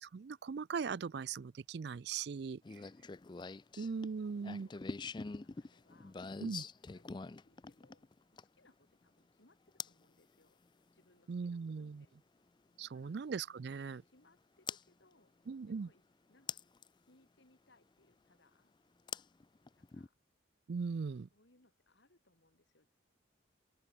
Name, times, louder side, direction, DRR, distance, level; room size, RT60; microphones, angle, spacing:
voice 1, 0.0-2.6 3.8-4.7 6.4-6.6 11.3-12.0 12.8-14.0 15.5-15.9 20.7-21.3, right 5 dB, 55° right, 0.4 m, -39 dB
sound 1, 2.6-8.7 9.8-10.0 11.9-12.0 14.7-14.8 16.5-16.9 19.1-20.1, left 5 dB, 25° left, 0.4 m, -44 dB
voice 2, 4.2-10.6 10.9-12.2 12.8-13.2 13.7-15.3 15.7-16.0 16.3-16.6 17.0-18.7 19.8-20.2 21.3-22.9, left 2 dB, 65° left, 3.0 m, -70 dB
open air
head